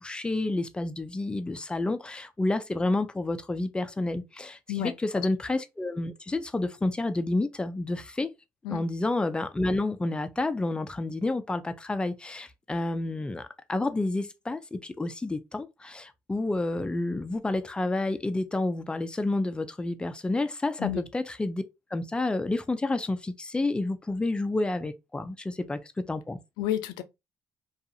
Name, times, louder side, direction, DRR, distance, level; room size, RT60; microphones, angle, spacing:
voice 1, 0.0-8.3 8.7-21.6 21.9-26.4, left 2 dB, 15° left, 0.4 m, -30 dB
voice 2, 4.7-5.3 8.6-8.8 20.8-21.0 26.6-27.0, left 12 dB, 90° left, 0.3 m, -31 dB
2.4 x 2.4 x 2.7 m
supercardioid pair, 80°, 7 cm